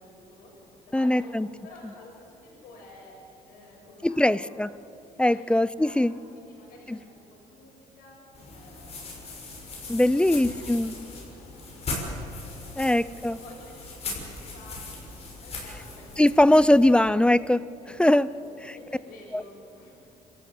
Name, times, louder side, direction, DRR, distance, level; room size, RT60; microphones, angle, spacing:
voice 1, 0.0-1.4 1.6-4.7 5.1-6.0 6.3-9.6 9.8-11.5 11.7-12.0 12.3-17.0 17.8-20.0, left 2 dB, 75° left, -2 dB, 7.3 m, -51 dB
voice 2, 0.9-1.5 4.0-4.7 5.2-6.1 6.9-7.0 9.9-10.9 12.8-13.4 16.2-17.7 18.0-18.3 19.3-19.4, left 1 dB, 5° left, 18 dB, 0.4 m, -21 dB
sound 1, 8.3-17.0, left 2 dB, 45° left, 6.2 m, -39 dB
26.0 x 14.0 x 8.5 m, 2.8 s
cardioid pair, 95°, 15 cm